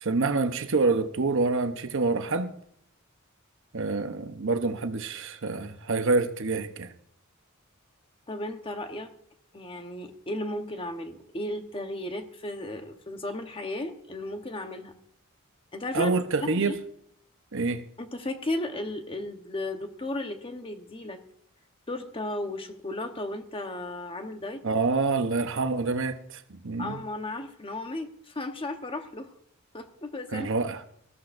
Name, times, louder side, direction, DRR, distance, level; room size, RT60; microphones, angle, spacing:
voice 1, 0.0-2.5 3.7-6.9 15.9-16.8 17.5-17.8 24.6-27.0 30.3-30.8, right 3 dB, 65° right, 0.9 m, -27 dB
voice 2, 8.3-9.1 9.5-14.9 15.7-16.1 16.4-16.8 18.0-21.2 21.9-24.6 26.8-29.3 29.7-30.5, left 1 dB, 25° left, 1.1 m, -35 dB
20.0 x 14.0 x 2.6 m
head